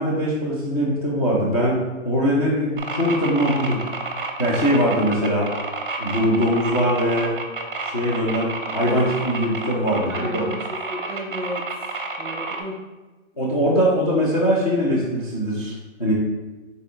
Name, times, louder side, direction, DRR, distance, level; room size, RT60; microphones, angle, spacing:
voice 1, 0.0-3.8 4.4-5.5 6.0-7.3 7.8-10.5 13.4-16.1, equal, 30° left, -7 dB, 0.5 m, -21 dB
sound 1, 2.8-12.6, right 3 dB, 45° right, 0.5 m, -30 dB
voice 2, 10.1-11.6 12.2-12.8, equal, 5° right, -6 dB, 0.7 m, -32 dB
5.4 x 3.7 x 2.4 m, 1.2 s
hypercardioid pair, 170°, 39 cm